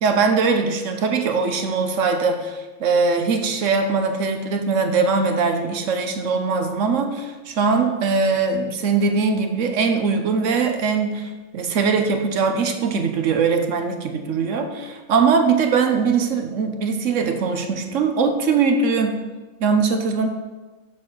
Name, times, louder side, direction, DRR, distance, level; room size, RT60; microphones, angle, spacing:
voice 1, 0.0-19.2 19.6-20.3, right 5 dB, 70° right, 6 dB, 1.1 m, -21 dB
7.5 x 4.3 x 6.2 m, 1.2 s
omnidirectional pair, 1.4 m